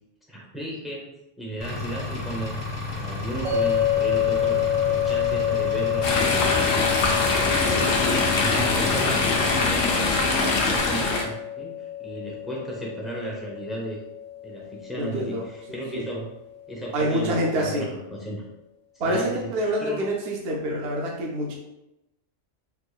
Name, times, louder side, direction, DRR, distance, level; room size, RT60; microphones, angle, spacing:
voice 1, 0.3-2.6 2.9-6.6 7.0-9.4 9.7-14.0 14.4-16.3 16.7-18.4 19.0-20.0, right 1 dB, ahead, -4 dB, 0.5 m, -35 dB
Engine, 1.6-9.8, left 3 dB, 50° left, 1.2 m, -32 dB
sound 1, 3.4-16.6, left 10 dB, 80° right, 1.4 m, -28 dB
Chatter / Stream, 6.0-11.2, left 3 dB, 85° left, 1.0 m, -23 dB
voice 2, 15.0-15.4 15.9-16.0 16.9-17.8 19.0-21.5, right 1 dB, 65° right, -2 dB, 0.8 m, -26 dB
3.5 x 3.5 x 2.2 m, 0.92 s
omnidirectional pair, 1.2 m